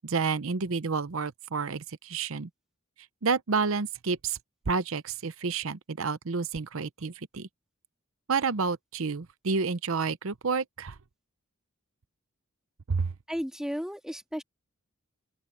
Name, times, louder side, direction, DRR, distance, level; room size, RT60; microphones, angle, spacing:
voice 1, 0.0-2.5 3.2-4.4 4.7-7.5 8.3-10.9 12.9-13.1, right 4 dB, 70° right, 0.7 m, -29 dB
voice 2, 13.3-14.4, equal, 5° right, 2.0 m, -34 dB
open air
head